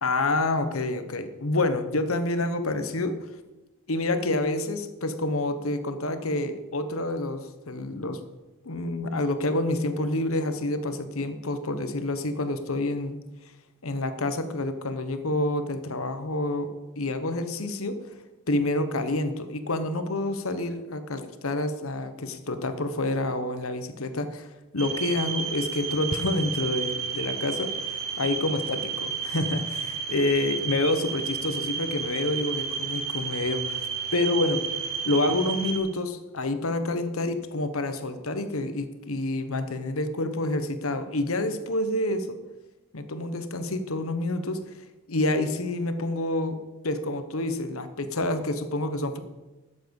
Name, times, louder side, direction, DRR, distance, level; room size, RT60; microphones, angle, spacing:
voice 1, 0.0-3.2 3.9-8.2 8.6-13.2 13.8-18.0 18.5-24.5 24.7-33.9 34.1-34.6 35.0-42.4 42.9-44.6 45.1-46.6 46.8-49.2, left 2 dB, 80° left, 9 dB, 1.2 m, -28 dB
sound 1, 24.8-35.8, right 6 dB, 80° right, 3.4 m, -32 dB
11.5 x 7.6 x 7.1 m, 1.1 s
head